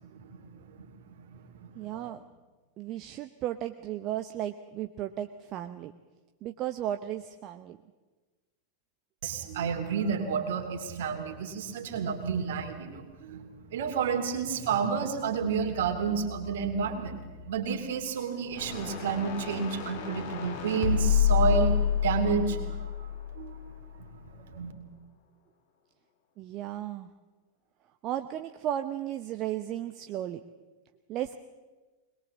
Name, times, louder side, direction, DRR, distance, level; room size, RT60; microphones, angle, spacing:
voice 1, 0.1-1.2 1.6-2.1 9.2-17.2 17.5-21.8 22.0-22.8 23.3-23.6 23.9-24.7, right 6 dB, 55° right, 5 dB, 2.9 m, -31 dB
voice 2, 1.7-2.2 2.8-5.9 6.4-7.8 26.4-27.1 28.0-30.4 31.1-31.4, right 12 dB, 35° right, 8 dB, 0.8 m, -35 dB
sound 1, 18.5-23.8, left 8 dB, 50° left, 3.5 m, -28 dB
21.5 x 20.5 x 7.3 m, 1.3 s
figure-of-eight pair, 90°, 0 cm